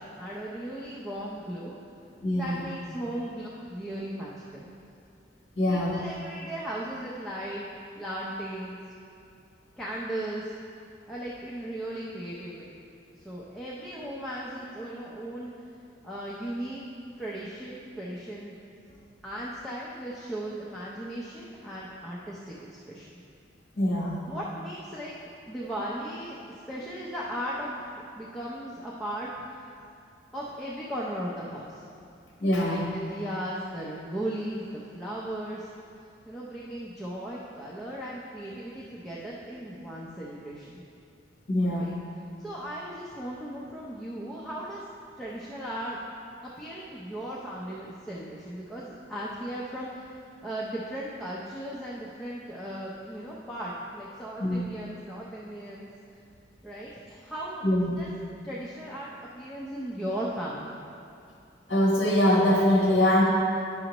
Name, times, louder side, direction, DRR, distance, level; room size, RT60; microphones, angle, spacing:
voice 1, 0.2-1.8 2.3-4.7 5.7-7.7 8.0-8.8 9.8-10.5 11.1-12.7 13.2-15.5 16.0-16.8 17.2-18.5 19.2-23.1 24.2-25.1 25.5-26.4 26.7-27.8 28.2-29.3 30.3-31.8 32.6-35.7 36.3-40.8 41.7-41.9 42.4-44.8 45.2-46.0 46.4-50.1 50.4-55.9 56.6-58.1 58.4-60.8, right 1 dB, ahead, -7 dB, 0.5 m, -37 dB
voice 2, 2.2-2.6 5.6-6.0 23.8-24.2 32.4-32.9 41.5-41.9 54.4-54.6 57.6-57.9 61.7-63.2, left 1 dB, 55° left, -4 dB, 1.0 m, -23 dB
9.9 x 6.3 x 3.0 m, 2.5 s
head